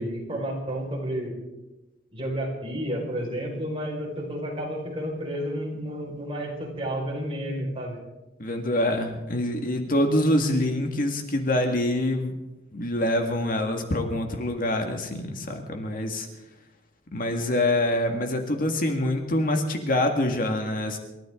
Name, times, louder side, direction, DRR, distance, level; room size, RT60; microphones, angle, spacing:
voice 1, 0.0-1.3 2.1-8.0, equal, 30° right, -2 dB, 5.3 m, -31 dB
voice 2, 8.4-12.3 12.7-16.3 17.1-21.0, left 1 dB, 50° left, 4 dB, 2.0 m, -25 dB
28.5 x 13.5 x 3.8 m, 1.0 s
head